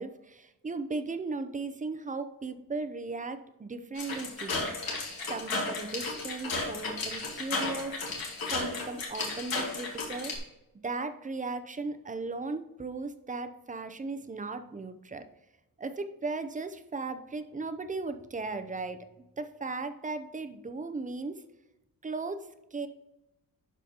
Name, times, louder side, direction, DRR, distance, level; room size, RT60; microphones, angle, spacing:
voice 1, 0.0-4.7 5.3-8.0 8.5-10.3 10.8-15.2 15.8-19.1 19.4-21.4 22.0-22.4 22.7-22.9, right 3 dB, 20° right, 9 dB, 0.5 m, -36 dB
sound 1, 4.0-10.4, left 3 dB, 75° left, 2.3 m, -34 dB
12.0 x 4.9 x 2.9 m, 0.95 s
wide cardioid pair, 145°, 36 cm